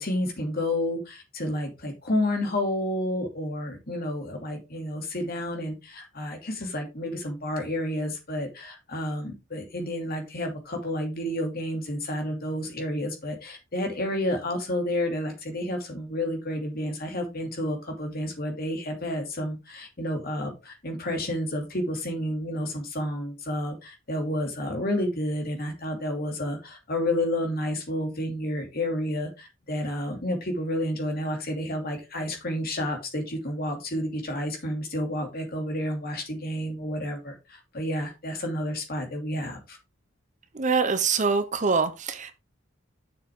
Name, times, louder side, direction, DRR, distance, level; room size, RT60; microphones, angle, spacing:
voice 1, 0.0-39.8, left 1 dB, 50° left, 2.7 m, -30 dB
voice 2, 40.5-42.3, right 5 dB, 35° right, 0.8 m, -24 dB
7.6 x 6.9 x 3.7 m
head